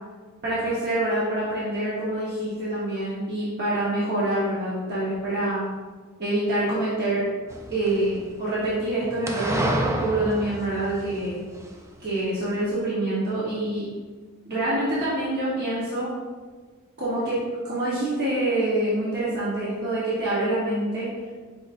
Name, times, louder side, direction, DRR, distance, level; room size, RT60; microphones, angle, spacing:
voice 1, 0.4-5.6 6.2-7.2 7.7-11.4 12.0-13.8 14.5-16.1 17.0-17.4 17.6-21.1, right 1 dB, 50° right, -9 dB, 1.0 m, -26 dB
sound 1, 7.5-8.4 9.3-11.7, right 1 dB, 15° right, 0.3 m, -29 dB
5.2 x 4.0 x 2.5 m, 1.4 s
head